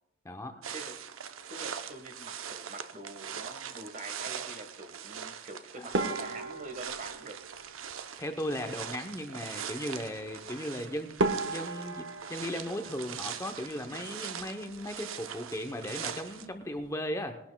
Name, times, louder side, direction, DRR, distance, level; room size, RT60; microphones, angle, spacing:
voice 1, 0.2-0.6 8.2-11.2 11.5-17.4, equal, 15° left, 5 dB, 0.7 m, -37 dB
sound 1, 0.6-16.5, right 8 dB, 90° right, 0.7 m, -42 dB
voice 2, 1.5-7.4 13.9-14.1, right 2 dB, 40° right, 6 dB, 1.4 m, -45 dB
sound 2, 5.9-8.4 10.7-10.8 11.2-14.0 14.2-15.0 15.3-15.5 15.8-15.9 16.5-16.9, right 3 dB, 65° right, 1.0 m, -35 dB
20.5 x 12.0 x 2.2 m, 0.92 s
head